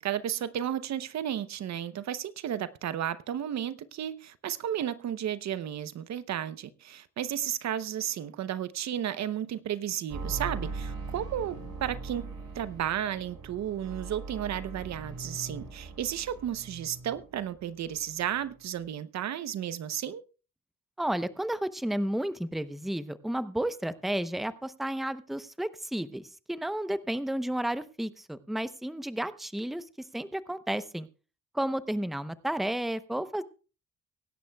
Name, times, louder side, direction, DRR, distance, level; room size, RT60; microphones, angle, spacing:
voice 1, 0.0-12.3 12.5-20.2, right 10 dB, 65° right, 0.8 m, -33 dB
sound 1, 10.1-17.6 17.8-18.5 18.8-18.9, right 3 dB, 80° right, 5.6 m, -40 dB
voice 2, 21.0-26.2 26.5-29.8 30.1-31.1 31.5-33.4, right 1 dB, ahead, 0.8 m, -32 dB
24.0 x 11.5 x 2.3 m
cardioid pair, 90°, 30 cm